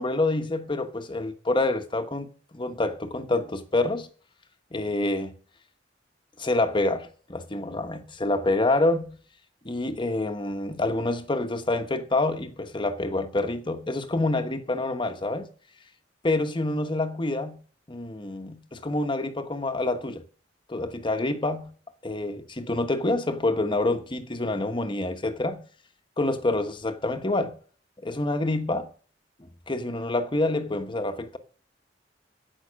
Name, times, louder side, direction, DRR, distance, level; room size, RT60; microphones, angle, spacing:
voice 1, 0.0-4.1 4.7-5.4 6.4-9.2 9.6-15.5 16.2-17.6 17.9-20.2 20.7-21.7 22.0-25.7 26.2-27.6 28.0-28.9 29.7-31.4, left 2 dB, 25° left, 1.2 m, -27 dB
15.5 x 5.8 x 6.4 m
head